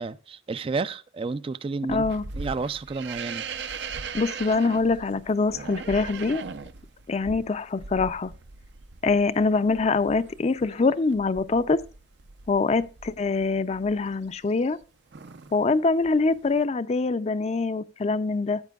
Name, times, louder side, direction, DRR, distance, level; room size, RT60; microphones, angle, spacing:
voice 1, 0.0-2.0 2.4-3.4, right 4 dB, 30° right, 0.3 m, -31 dB
voice 2, 1.9-2.2 4.1-6.4 7.1-8.3 9.0-11.8 12.5-14.8 15.5-18.6, left 3 dB, 35° left, 0.4 m, -24 dB
sound 1, 1.9-14.8 15.1-15.6 16.0-16.6, right 5 dB, 65° right, 0.6 m, -40 dB
14.0 x 8.3 x 2.3 m
head